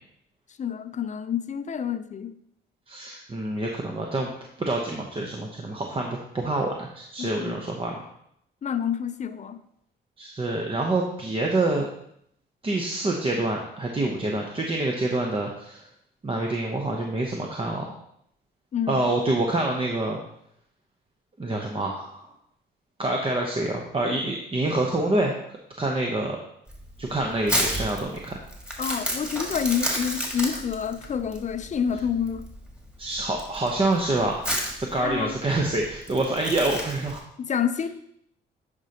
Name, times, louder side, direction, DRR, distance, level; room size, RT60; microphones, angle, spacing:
voice 1, 0.6-2.3 7.2-7.6 8.6-9.6 18.7-19.0 28.8-32.5 35.0-35.4 37.4-37.9, left 7 dB, 35° left, 11 dB, 0.6 m, -28 dB
voice 2, 2.9-8.1 10.2-11.9 12.6-15.9 16.2-17.9 18.9-20.2 21.4-22.3 23.0-25.3 25.8-26.4 27.0-28.4 33.0-34.4 34.8-37.2, right 2 dB, 25° right, 0 dB, 0.9 m, -26 dB
Crumpling crinkling, 26.7-37.2, equal, 5° right, 2.0 m, -31 dB
9.9 x 5.2 x 2.9 m, 0.72 s
cardioid pair, 90°, 20 cm